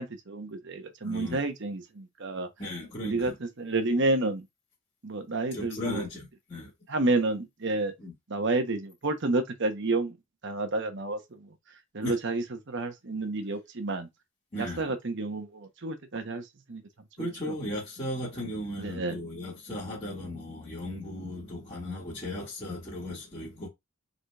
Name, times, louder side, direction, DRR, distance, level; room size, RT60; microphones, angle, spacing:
voice 1, 0.0-2.5 3.0-4.5 5.0-6.0 6.9-7.9 8.3-10.2 10.4-11.5 11.9-14.1 14.6-16.8 17.2-17.6 18.8-19.1, right 2 dB, 55° right, 0.9 m, -30 dB
voice 2, 1.0-1.4 2.6-3.3 5.5-6.7 8.0-8.1 12.0-12.1 14.5-14.8 17.2-23.7, left 1 dB, 25° left, 1.9 m, -36 dB
4.9 x 4.0 x 2.4 m
head